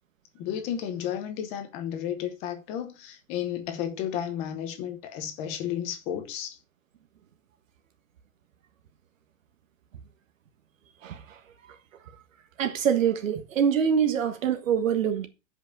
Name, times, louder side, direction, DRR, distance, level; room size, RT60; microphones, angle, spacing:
voice 1, 0.3-6.6, left 10 dB, 15° left, 0.8 m, -33 dB
voice 2, 11.0-11.4 12.6-15.3, right 8 dB, 80° right, 1.5 m, -25 dB
7.7 x 5.5 x 6.8 m
supercardioid pair, 180°, 39 cm